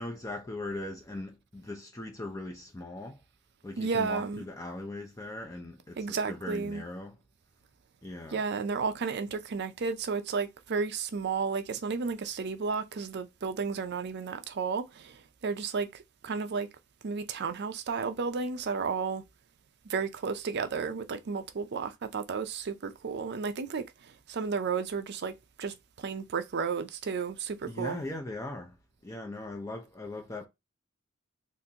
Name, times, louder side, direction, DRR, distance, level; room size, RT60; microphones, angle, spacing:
voice 1, 0.0-3.2 3.6-7.2 8.0-8.4 27.7-28.8 29.0-30.5, left 2 dB, 15° left, 0.5 m, -39 dB
voice 2, 3.8-4.4 6.0-6.8 8.3-16.7 17.0-19.2 19.9-25.3 25.6-28.0, right 5 dB, 55° right, 0.5 m, -33 dB
3.8 x 2.5 x 2.7 m
head